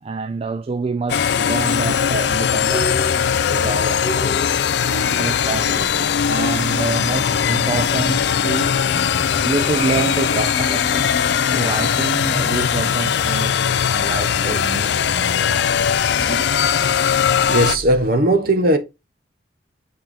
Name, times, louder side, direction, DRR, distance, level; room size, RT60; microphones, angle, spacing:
voice 1, 0.0-4.5 5.1-8.7 9.4-11.1 11.5-15.8 16.2-16.5, right 4 dB, 30° right, 0.3 m, -27 dB
sound 1, 1.1-17.8, left 8 dB, 60° left, 0.4 m, -20 dB
sound 2, 2.7-18.0, left 1 dB, 5° right, 1.9 m, -35 dB
voice 2, 9.2-9.5 17.5-18.8, right 1 dB, 50° right, 1.1 m, -18 dB
7.4 x 4.4 x 3.4 m
head